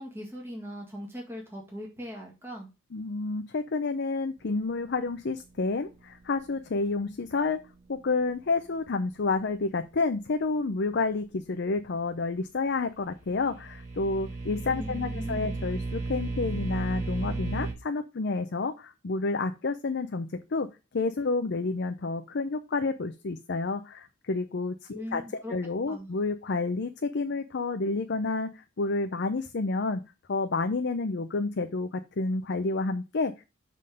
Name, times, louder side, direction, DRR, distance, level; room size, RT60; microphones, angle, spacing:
voice 1, 0.0-2.7 14.7-15.5 24.9-25.5 25.9-26.1, equal, 10° right, -1 dB, 1.9 m, -40 dB
voice 2, 2.9-7.6 7.9-20.7 20.9-30.0 30.3-33.4, left 3 dB, 55° left, 7 dB, 0.6 m, -30 dB
sound 1, 13.2-17.7, right 3 dB, 35° right, 2.5 m, -34 dB
7.6 x 3.8 x 5.2 m, 0.28 s
head